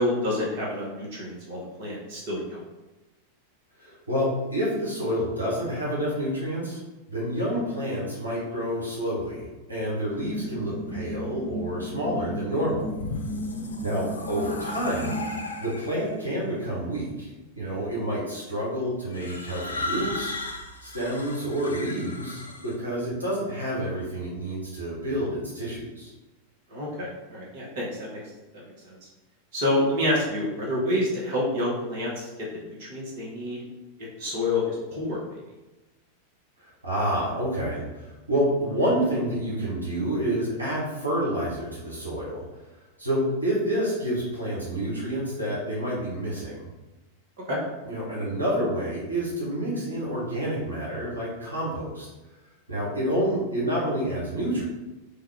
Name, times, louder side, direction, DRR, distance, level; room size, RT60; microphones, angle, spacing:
voice 1, 0.0-2.6 26.7-28.2 28.5-29.0 29.5-32.5 32.8-33.6 34.2-35.2 47.5-47.6, left 1 dB, 50° right, -5 dB, 1.0 m, -28 dB
voice 2, 3.8-6.8 7.1-13.2 13.8-15.1 15.6-20.3 20.8-26.1 36.8-42.4 43.0-46.7 47.9-52.1 52.7-54.7, equal, 85° right, -6 dB, 1.0 m, -28 dB
sound 1, 10.2-15.4, left 1 dB, 20° left, 0.6 m, -35 dB
sound 2, 12.7-16.2 17.1-17.5 19.1-22.8, left 2 dB, 75° left, 0.4 m, -36 dB
3.4 x 2.3 x 3.3 m, 1.1 s
figure-of-eight pair, 90°, 0 cm